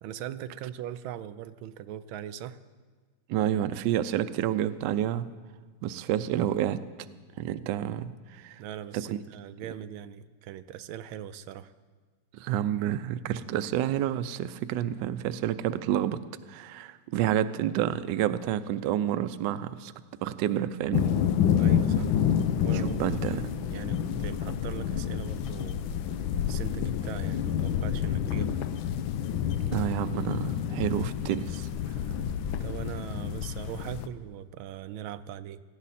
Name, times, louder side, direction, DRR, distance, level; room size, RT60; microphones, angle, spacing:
voice 1, 0.0-2.6 8.6-11.7 21.6-22.1 22.6-25.8 26.5-28.6 32.6-35.6, right 10 dB, 90° right, 12 dB, 1.4 m, -40 dB
voice 2, 3.3-5.3 5.8-6.8 7.4-8.6 8.9-9.2 12.3-16.2 16.5-19.9 20.2-21.1 22.7-23.5 29.7-31.7, right 11 dB, 75° right, 12 dB, 1.1 m, -29 dB
sound 1, 20.9-34.1, left 9 dB, 85° left, 1.5 m, -29 dB
17.5 x 15.0 x 4.2 m, 1.4 s
omnidirectional pair, 2.1 m